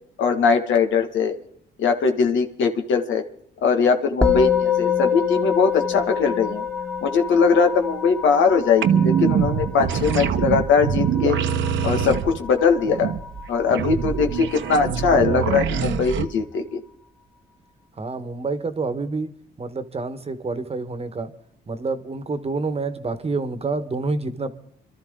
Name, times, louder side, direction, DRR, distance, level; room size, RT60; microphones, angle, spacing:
voice 1, 0.2-1.3 1.8-3.2 3.6-6.6 7.0-11.4 11.8-13.1 13.5-16.8, left 5 dB, 75° left, 5 dB, 1.7 m, -20 dB
Musical instrument, 4.2-13.7, left 7 dB, 5° left, 1.7 m, -27 dB
sound 1, 8.8-16.3, right 8 dB, 75° right, 1.1 m, -24 dB
voice 2, 18.0-19.3 19.6-21.3 21.7-24.5, right 3 dB, 30° right, 10 dB, 1.4 m, -28 dB
26.0 x 13.0 x 3.8 m, 0.66 s
cardioid pair, 90°, 20 cm